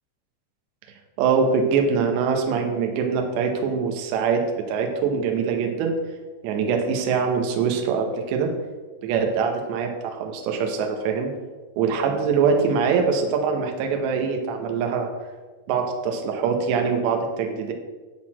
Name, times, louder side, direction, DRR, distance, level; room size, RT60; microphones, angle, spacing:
voice 1, 1.2-6.0 6.4-8.5 9.0-11.3 11.8-15.1 15.7-17.7, right 5 dB, 75° right, 3 dB, 3.0 m, -23 dB
11.0 x 4.0 x 7.3 m, 1.3 s
omnidirectional pair, 5.7 m